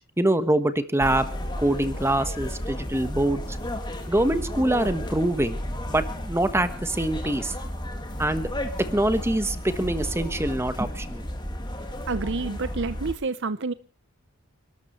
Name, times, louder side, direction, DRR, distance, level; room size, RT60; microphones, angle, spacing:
voice 1, 0.2-1.3 1.6-3.6 4.1-5.6 5.9-7.5 8.2-8.5 8.9-11.2, right 1 dB, 10° right, 1.2 m, -24 dB
sound 1, 1.0-13.1, equal, 20° left, 2.4 m, -33 dB
voice 2, 12.1-13.7, right 3 dB, 55° right, 0.7 m, -28 dB
30.0 x 12.5 x 3.2 m
head